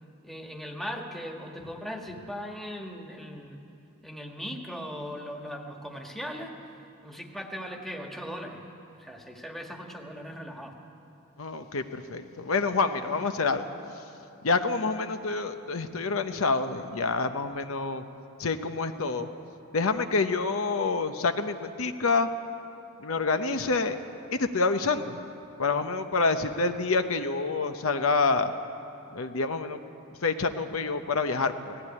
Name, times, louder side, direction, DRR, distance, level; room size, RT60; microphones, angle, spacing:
voice 1, 0.2-3.6 4.0-6.5 7.0-8.7 9.0-10.7, equal, ahead, 2 dB, 1.5 m, -38 dB
voice 2, 11.4-13.7 14.4-18.0 18.4-19.3 19.7-22.3 23.0-24.0 24.3-25.2 25.6-28.5 29.1-29.8 30.2-31.8, left 4 dB, 75° left, 8 dB, 0.8 m, -27 dB
18.0 x 15.0 x 9.7 m, 2.7 s
head